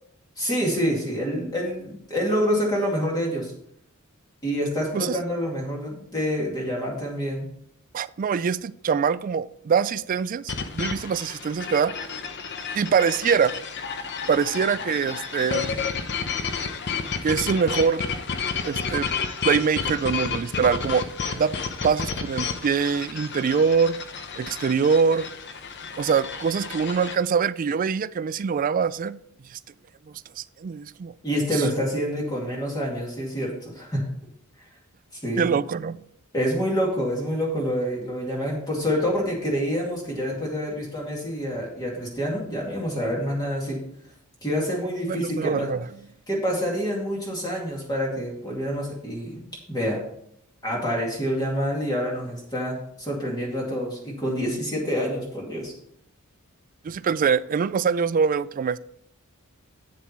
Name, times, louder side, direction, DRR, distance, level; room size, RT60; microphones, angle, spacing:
voice 1, 0.4-3.5 4.4-7.5 31.2-34.0 35.2-35.5 36.3-43.8 44.4-45.7 46.3-49.4 49.7-50.0 50.6-55.7, equal, 20° left, 2.3 m, -27 dB
voice 2, 7.9-11.9 12.8-13.5 14.3-15.7 17.2-18.0 18.6-19.1 19.4-21.0 21.3-21.5 21.8-24.0 24.4-25.3 26.0-29.2 29.5-29.6 30.4-31.1 31.5-31.6 35.4-36.0 45.1-45.8 54.5-54.6 56.8-58.8, right 6 dB, 40° right, 0.3 m, -24 dB
sound 1, 10.5-27.2, left 5 dB, 50° left, 0.8 m, -31 dB
8.9 x 7.2 x 4.4 m
head